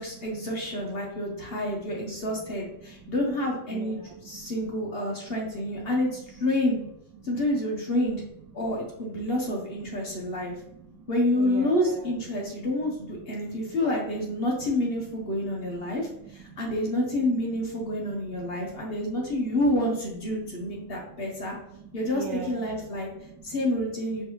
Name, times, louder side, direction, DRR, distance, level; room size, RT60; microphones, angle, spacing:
voice 1, 0.0-6.8 7.2-8.2 8.5-10.5 11.1-21.6 21.9-23.1 23.4-24.2, left 1 dB, 55° left, -1 dB, 0.6 m, -28 dB
voice 2, 3.7-4.8 7.3-7.4 9.2-9.3 10.1-11.1 11.3-12.0 12.8-12.9 13.2-13.7 15.4-15.5 15.8-16.6 18.1-18.2 18.5-19.3 20.6-23.6, right 6 dB, 75° right, 2 dB, 1.1 m, -44 dB
4.7 x 3.2 x 3.0 m, 0.78 s
omnidirectional pair, 2.1 m